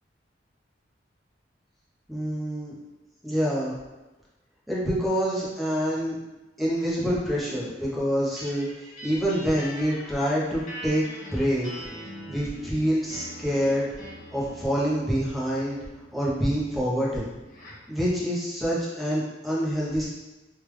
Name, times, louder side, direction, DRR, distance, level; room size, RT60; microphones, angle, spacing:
voice 1, 2.1-2.7 3.2-3.8 4.7-6.1 6.6-11.0 11.3-11.7 12.3-13.9 14.3-15.8 16.1-17.3 17.9-20.0, equal, ahead, -8 dB, 0.8 m, -26 dB
sound 1, 8.4-17.9, equal, 50° left, 0.9 m, -43 dB
3.3 x 2.5 x 3.2 m, 1.1 s
head